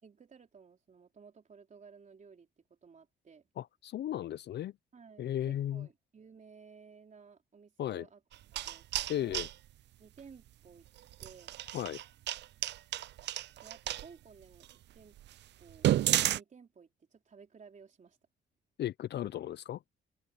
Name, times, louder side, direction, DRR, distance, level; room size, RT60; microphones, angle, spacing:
voice 1, 0.0-3.5 4.9-8.2 8.5-9.5 10.0-10.9 11.2-11.6 13.6-14.7 14.9-15.2 15.6-18.2, right 5 dB, 40° right, 3.9 m, -56 dB
voice 2, 3.6-4.7 5.2-5.9 7.8-8.1 9.1-9.5 11.7-12.0 18.8-19.8, left 11 dB, 60° left, 0.5 m, -35 dB
sound 1, 8.3-9.5 11.1-14.0 14.6-14.7 15.2-15.3 15.7-16.4, right 13 dB, 60° right, 0.4 m, -31 dB
open air
cardioid pair, 90°, 20 cm